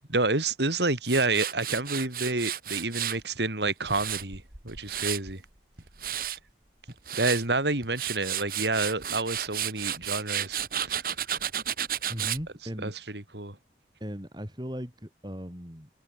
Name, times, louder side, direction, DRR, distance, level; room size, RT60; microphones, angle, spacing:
voice 1, 0.1-5.4 7.2-11.0 12.8-13.6, right 2 dB, 75° right, 3.7 m, -29 dB
Tools, 1.0-3.2 3.7-5.3 5.8-6.4 6.9-7.4 7.8-12.4, right 10 dB, 55° right, 3.6 m, -32 dB
voice 2, 12.1-12.9 14.0-15.9, equal, 25° right, 6.3 m, -37 dB
head